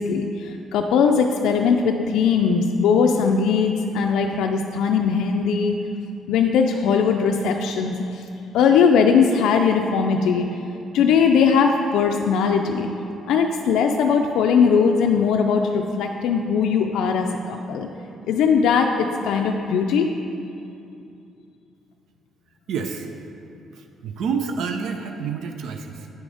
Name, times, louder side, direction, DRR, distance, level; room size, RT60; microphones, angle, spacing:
voice 1, 0.0-5.8 6.3-8.2 8.5-10.5 10.9-12.9 13.3-17.9 18.2-20.1, left 6 dB, 85° left, 3 dB, 0.4 m, -20 dB
voice 2, 22.7-23.1 23.7-26.1, right 5 dB, 75° right, 5 dB, 0.5 m, -28 dB
9.5 x 4.9 x 3.9 m, 2.7 s
cardioid pair, 115°, 0 cm